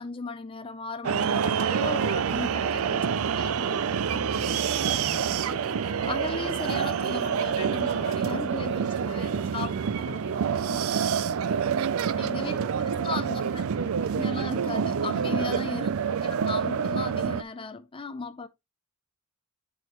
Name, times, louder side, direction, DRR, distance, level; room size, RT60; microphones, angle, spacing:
voice 1, 0.0-3.5 6.1-10.2 10.6-10.8 12.2-12.6 13.0-13.4 14.2-18.5, left 4 dB, 25° left, 0.5 m, -36 dB
sound 1, 1.0-17.4, right 7 dB, 70° right, 0.4 m, -27 dB
sound 2, 1.6-11.8, right 1 dB, 20° right, 2.3 m, -43 dB
voice 2, 2.9-5.5 8.3-10.8 12.3-14.2, right 1 dB, 55° right, 1.7 m, -42 dB
10.5 x 4.8 x 3.0 m
head